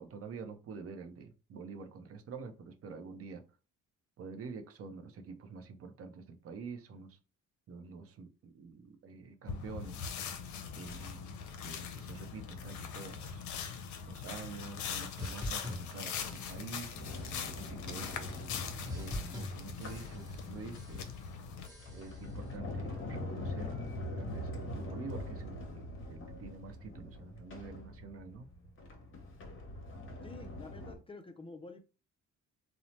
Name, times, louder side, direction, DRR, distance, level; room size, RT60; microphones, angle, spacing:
voice 1, 0.0-3.4 4.2-7.2 7.7-10.1 10.7-11.4 11.6-13.4 14.1-17.0 17.6-18.5 18.9-21.1 21.9-28.5, right 5 dB, 50° right, 0.5 m, -47 dB
sound 1, 9.5-21.7, left 6 dB, 75° left, 0.5 m, -42 dB
sound 2, 15.2-16.8 17.0-17.5 17.9-18.6 18.9-20.5 20.7-21.2 21.6-22.3, left 1 dB, 15° right, 1.0 m, -45 dB
Sliding door, 16.9-20.7 21.4-31.0, left 1 dB, 40° left, 0.8 m, -43 dB
voice 2, 30.2-31.8, left 3 dB, 20° left, 0.3 m, -49 dB
2.7 x 2.0 x 3.0 m
cardioid pair, 90°, 30 cm